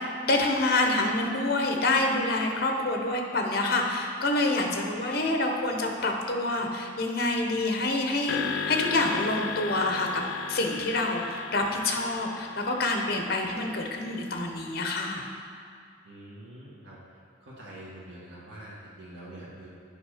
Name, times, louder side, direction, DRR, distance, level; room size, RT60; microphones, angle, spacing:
voice 1, 0.2-8.4 8.7-10.2 10.5-15.2, left 2 dB, 55° left, 2 dB, 0.9 m, -27 dB
sound 1, 8.3-14.7, left 5 dB, 80° left, 0.5 m, -36 dB
voice 2, 16.0-19.7, right 1 dB, 90° right, -8 dB, 1.6 m, -45 dB
8.6 x 5.4 x 4.9 m, 2.3 s
head